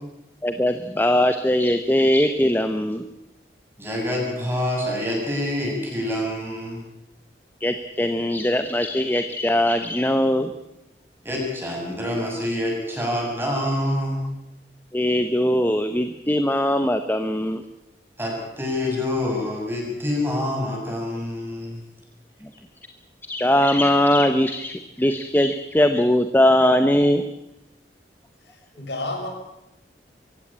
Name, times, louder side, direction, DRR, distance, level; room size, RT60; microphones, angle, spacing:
voice 1, 0.4-3.0 7.6-10.5 14.9-17.6 23.2-27.2, left 1 dB, 10° left, 8 dB, 0.9 m, -20 dB
voice 2, 3.8-6.8 11.2-14.3 18.2-21.8, left 1 dB, 15° right, -1 dB, 7.2 m, -26 dB
voice 3, 28.4-29.3, left 2 dB, 80° left, 3 dB, 6.1 m, -31 dB
23.5 x 16.5 x 8.8 m, 0.89 s
head